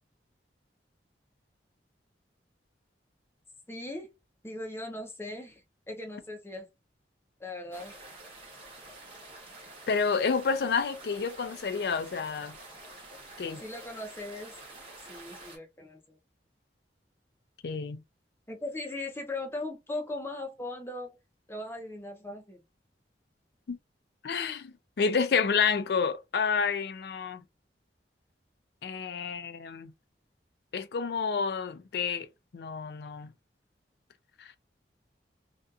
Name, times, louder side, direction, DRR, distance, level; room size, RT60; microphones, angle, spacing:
voice 1, 3.7-4.1 4.4-6.7 7.4-7.9 13.6-14.5 15.1-16.2 18.5-21.2 21.5-22.6, left 2 dB, 15° left, 0.6 m, -39 dB
sound 1, 7.7-15.6, right 2 dB, 30° right, 1.1 m, -48 dB
voice 2, 9.9-12.5 13.4-13.6 17.6-18.0 23.7-23.8 24.2-27.4 28.8-29.9 30.7-32.3 32.5-33.3, left 5 dB, 60° left, 0.4 m, -29 dB
2.6 x 2.4 x 2.3 m
head